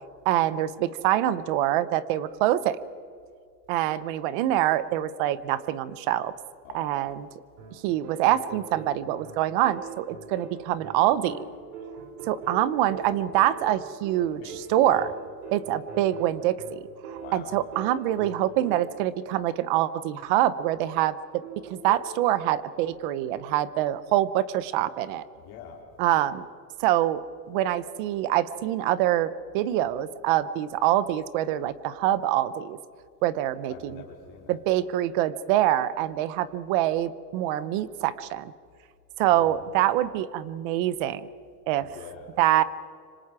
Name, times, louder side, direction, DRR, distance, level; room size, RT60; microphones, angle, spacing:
voice 1, 0.3-2.8 3.7-6.3 6.7-7.3 7.8-11.4 12.3-15.1 15.5-16.8 17.1-25.2 26.0-26.5 26.8-32.8 33.2-34.0 34.5-38.5 39.2-41.3 41.7-41.9 42.4-42.6, right 13 dB, 30° right, 17 dB, 0.6 m, -25 dB
sound 1, 7.6-19.2 21.4-22.2, right 5 dB, 60° right, 5.2 m, -42 dB
voice 2, 14.2-15.1 17.1-17.5 25.4-25.8 33.7-34.6 39.3-39.6 41.8-42.3, left 7 dB, 40° left, 0 dB, 4.0 m, -44 dB
26.5 x 25.5 x 4.8 m, 2.2 s
supercardioid pair, 165°, 49 cm